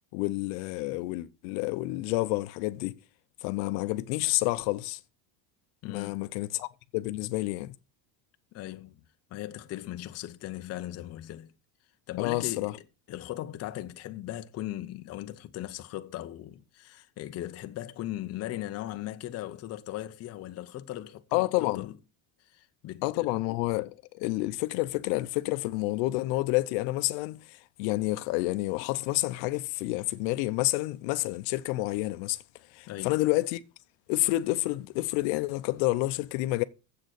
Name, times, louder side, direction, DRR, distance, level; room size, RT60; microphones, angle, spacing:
voice 1, 0.1-3.0 3.4-5.0 5.8-6.7 6.9-7.7 12.2-12.7 21.3-21.9 23.0-32.4 32.7-33.6 34.1-36.6, left 19 dB, 70° left, 0.7 m, -29 dB
voice 2, 5.8-6.3 8.5-9.0 9.3-11.5 12.1-12.8 13.1-21.9 22.4-23.4 32.9-33.2, left 14 dB, 30° left, 0.7 m, -38 dB
7.7 x 6.5 x 6.5 m
cardioid pair, 155°, 49 cm